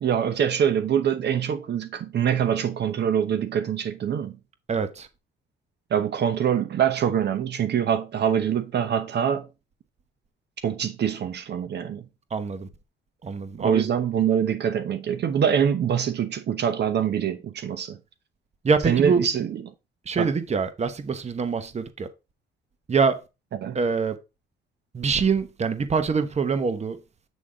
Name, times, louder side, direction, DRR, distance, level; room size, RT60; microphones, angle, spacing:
voice 1, 0.0-4.4 5.9-9.5 10.6-12.1 13.6-18.0 18.9-19.6 20.2-20.3 23.6-23.8, right 8 dB, 60° right, 0.9 m, -24 dB
voice 2, 4.7-5.1 12.3-12.7 13.2-13.8 18.6-19.2 20.1-22.1 22.9-23.2 23.7-24.2 24.9-27.0, right 5 dB, 35° right, 1.0 m, -24 dB
8.3 x 3.6 x 5.0 m
cardioid pair, 90°, 20 cm